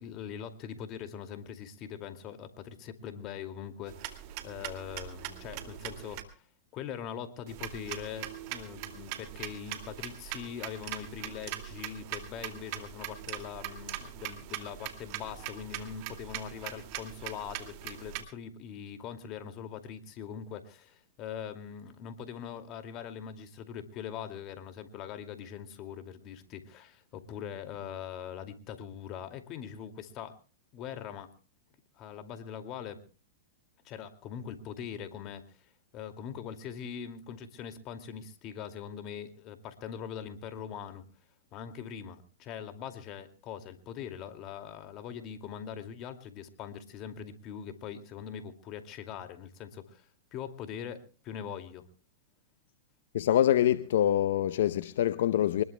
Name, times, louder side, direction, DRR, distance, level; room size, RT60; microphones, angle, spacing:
voice 1, 0.0-6.4 6.7-30.4 30.7-31.3 32.0-33.0 33.8-35.4 35.9-41.0 41.5-51.8, left 8 dB, 40° left, 2.3 m, -42 dB
sound 1, 3.9-6.2 7.5-18.2, right 13 dB, 50° right, 2.3 m, -41 dB
voice 2, 53.1-55.6, left 11 dB, 70° left, 0.7 m, -25 dB
24.5 x 20.5 x 2.2 m
hypercardioid pair, 115°, 0 cm